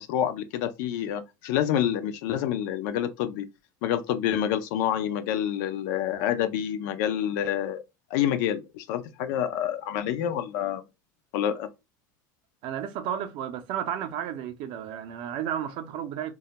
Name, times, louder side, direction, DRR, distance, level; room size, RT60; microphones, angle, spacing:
voice 1, 0.0-3.5 3.8-7.8 8.1-10.8 11.3-11.7, left 10 dB, 70° left, 0.4 m, -27 dB
voice 2, 12.6-16.3, right 9 dB, 55° right, 0.5 m, -32 dB
2.2 x 2.1 x 2.8 m
supercardioid pair, 100°, 10 cm